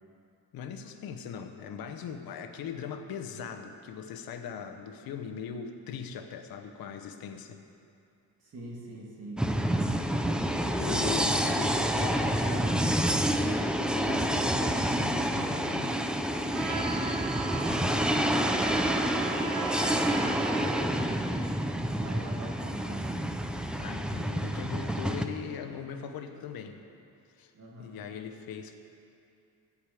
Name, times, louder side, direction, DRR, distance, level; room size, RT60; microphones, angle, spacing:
voice 1, 0.5-7.6 10.8-12.8 13.4-16.0 23.8-26.8 27.3-27.5 27.8-28.8, left 7 dB, 80° left, 7 dB, 0.9 m, -40 dB
voice 2, 8.4-9.5 19.2-21.2 22.0-23.2 27.5-28.0, right 2 dB, 45° right, -3 dB, 2.3 m, -44 dB
sound 1, 9.4-25.2, equal, 5° right, 0.4 m, -28 dB
Trumpet, 16.5-20.8, right 5 dB, 80° right, 1.0 m, -37 dB
14.5 x 4.9 x 8.2 m, 2.6 s
cardioid pair, 155°, 35 cm